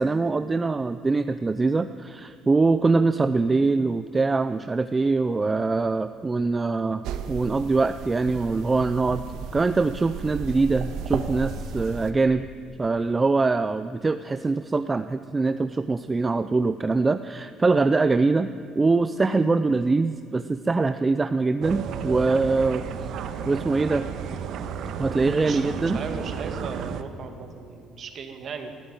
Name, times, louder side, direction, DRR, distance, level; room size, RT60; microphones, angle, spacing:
voice 1, 0.0-9.2 9.5-12.5 12.8-18.5 18.8-22.8 23.5-24.1 25.0-26.0, right 3 dB, 15° right, 11 dB, 0.5 m, -23 dB
sound 1, 7.0-12.1, right 7 dB, 75° right, 1.6 m, -34 dB
sound 2, 21.6-27.0, right 7 dB, 60° right, 1.3 m, -33 dB
voice 2, 25.9-28.7, right 5 dB, 40° right, 6 dB, 2.2 m, -36 dB
21.0 x 14.0 x 9.0 m, 2.5 s
cardioid pair, 155°, 0 cm